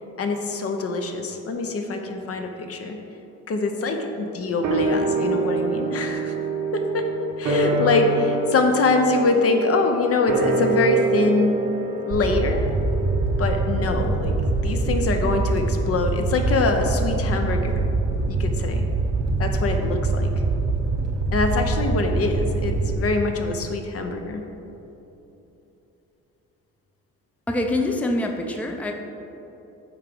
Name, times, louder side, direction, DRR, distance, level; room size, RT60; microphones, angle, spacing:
voice 1, 0.2-3.0 3.5-6.3 6.7-7.1 7.4-11.7 12.1-12.6 13.4-17.8 18.3-18.8 19.4-20.3 21.3-24.4, left 3 dB, 50° left, 4 dB, 0.7 m, -24 dB
sound 1, 4.6-15.2 15.5-15.6, right 3 dB, 75° right, 1.2 m, -27 dB
Fire, 12.1-22.9, right 3 dB, 60° right, 0.9 m, -24 dB
voice 2, 27.5-28.9, left 1 dB, 5° left, 3 dB, 0.5 m, -25 dB
8.2 x 3.6 x 5.2 m, 3.0 s
cardioid pair, 90°, 30 cm